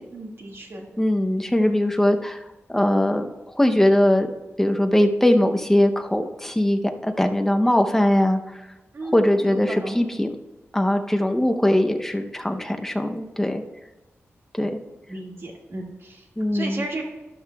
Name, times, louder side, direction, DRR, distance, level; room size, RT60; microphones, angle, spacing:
voice 1, 0.1-0.9 8.9-10.0 15.1-16.2 16.5-17.0, right 2 dB, 60° right, 0 dB, 1.9 m, -34 dB
voice 2, 1.0-2.4 2.7-3.3 3.6-4.3 4.6-8.4 9.1-10.4 10.7-13.6 14.6-14.7 16.4-16.8, left 1 dB, 10° left, 5 dB, 0.7 m, -20 dB
12.5 x 11.5 x 2.3 m, 1.1 s
wide cardioid pair, 130°, 5 cm